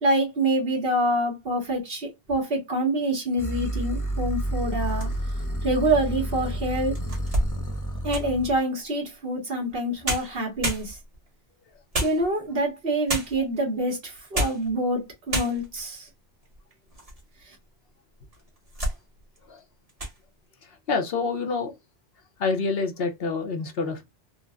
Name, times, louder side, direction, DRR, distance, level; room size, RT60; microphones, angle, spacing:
voice 1, 0.0-5.1 5.6-7.0 8.0-11.0 12.0-16.1, right 1 dB, 60° right, 1.5 m, -26 dB
sound 1, 3.4-8.6, equal, 25° left, 0.4 m, -30 dB
sound 2, 4.8-5.5 6.1-6.2 6.7-8.4 9.7-9.8 10.0-11.3 11.9-12.6 13.1-13.5 14.2-14.7 15.0-15.1 15.3-15.9 16.4-17.2 17.5-17.6 18.3-19.0 19.4-19.6 19.9-20.2, right 1 dB, 35° right, 1.3 m, -30 dB
voice 2, 20.6-21.8 22.4-24.0, left 4 dB, 65° left, 0.9 m, -27 dB
3.9 x 2.1 x 2.3 m
omnidirectional pair, 1.1 m